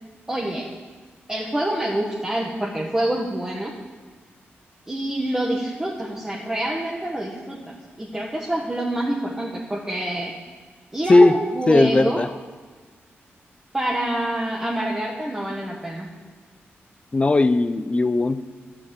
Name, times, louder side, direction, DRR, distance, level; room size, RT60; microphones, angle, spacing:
voice 1, 0.3-0.7 1.3-3.7 4.9-10.3 10.9-12.2 13.7-16.1, right 1 dB, 15° right, -4 dB, 1.6 m, -26 dB
voice 2, 11.7-12.3 17.1-18.4, left 2 dB, 25° left, 12 dB, 0.6 m, -17 dB
12.0 x 7.4 x 8.5 m, 1.4 s
wide cardioid pair, 105°, 4 cm